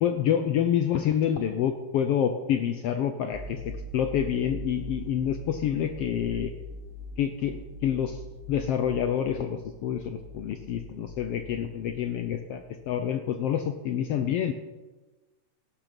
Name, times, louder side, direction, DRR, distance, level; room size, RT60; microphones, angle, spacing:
voice 1, 0.0-6.5 7.2-8.2 8.5-14.5, left 9 dB, 75° left, 7 dB, 1.4 m, -27 dB
sound 1, 3.3-12.3 12.6-12.8, equal, 30° right, 2.9 m, -42 dB
15.0 x 12.0 x 5.2 m, 1.2 s
omnidirectional pair, 3.5 m